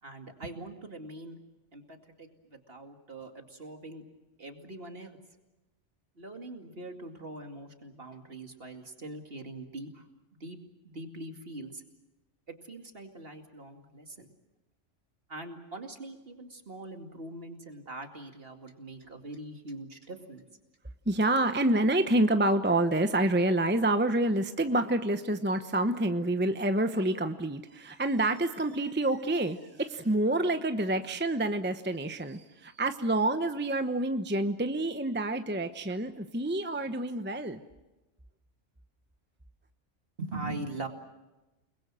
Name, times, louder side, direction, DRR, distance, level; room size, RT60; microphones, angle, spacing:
voice 1, 0.0-1.4 1.7-4.0 4.4-5.2 6.2-10.1 10.4-10.6 10.8-11.8 12.5-14.3 15.3-20.5 40.2-40.9, right 2 dB, 50° right, 5 dB, 2.6 m, -42 dB
voice 2, 21.1-37.6, right 1 dB, 10° right, 8 dB, 0.9 m, -28 dB
29.5 x 21.0 x 7.6 m, 1.0 s
omnidirectional pair, 1.3 m